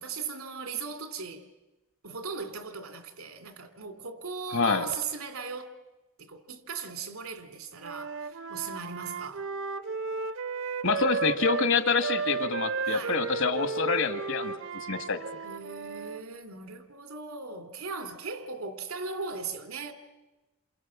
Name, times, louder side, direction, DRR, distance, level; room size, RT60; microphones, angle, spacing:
voice 1, 0.0-1.5 2.0-5.8 6.2-9.5 12.9-13.2 15.4-19.9, right 5 dB, 85° right, 2.7 m, -38 dB
voice 2, 4.5-4.9 10.8-15.2, left 4 dB, 65° left, 1.8 m, -27 dB
Wind instrument woodwind instrument, 7.8-11.7 12.0-16.2, right 5 dB, 65° right, 1.0 m, -34 dB
28.5 x 27.5 x 7.4 m
head